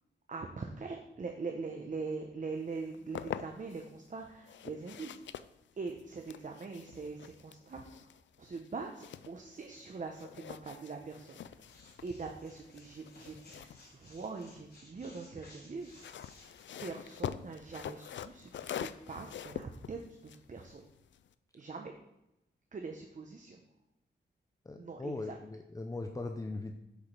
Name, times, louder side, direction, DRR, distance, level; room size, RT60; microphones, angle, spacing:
voice 1, 0.3-5.4 5.8-11.7 12.0-16.3 16.8-20.9 21.5-22.0 22.7-23.6 24.8-25.4, right 4 dB, 40° right, 3 dB, 0.8 m, -43 dB
sound 1, 2.7-3.9 4.4-9.9 10.1-14.8 15.8-21.3, left 9 dB, 85° left, 0.4 m, -45 dB
sound 2, 11.4-16.6, left 2 dB, 55° left, 3.1 m, -58 dB
voice 2, 24.6-26.7, left 2 dB, 20° left, 4 dB, 0.6 m, -39 dB
8.2 x 5.0 x 5.8 m, 0.89 s
wide cardioid pair, 115°, 19 cm